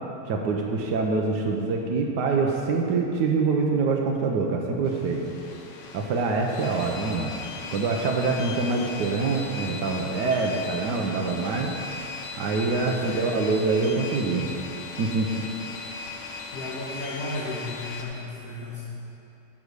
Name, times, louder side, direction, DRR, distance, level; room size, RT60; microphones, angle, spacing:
voice 1, 0.3-5.2 5.9-7.3 7.7-11.7 12.4-14.5 15.0-15.4 15.9-16.0, right 4 dB, 75° right, 1 dB, 1.4 m, -25 dB
sound 1, 4.8-18.0, left 4 dB, 90° left, 1.6 m, -38 dB
voice 2, 12.8-13.4 16.5-18.8, left 2 dB, 60° left, -6 dB, 1.6 m, -35 dB
11.0 x 4.9 x 6.7 m, 2.7 s
omnidirectional pair, 1.8 m